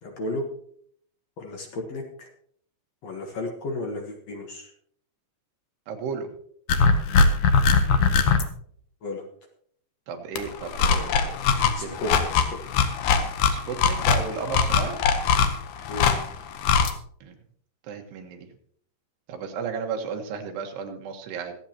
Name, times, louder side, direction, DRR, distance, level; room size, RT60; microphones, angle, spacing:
voice 1, 0.0-0.5 1.4-2.3 3.0-4.7 9.0-9.2 11.7-12.6 15.9-16.1, left 1 dB, 60° left, 2 dB, 1.9 m, -33 dB
voice 2, 5.9-6.3 10.1-11.4 11.8-12.0 13.5-15.0 17.2-17.4 17.8-18.5 19.3-21.6, right 5 dB, 80° right, 4 dB, 3.5 m, -33 dB
sound 1, 6.7-8.4 10.4-16.9, left 5 dB, 75° left, 1.8 m, -21 dB
24.5 x 8.5 x 2.9 m, 0.62 s
omnidirectional pair, 4.8 m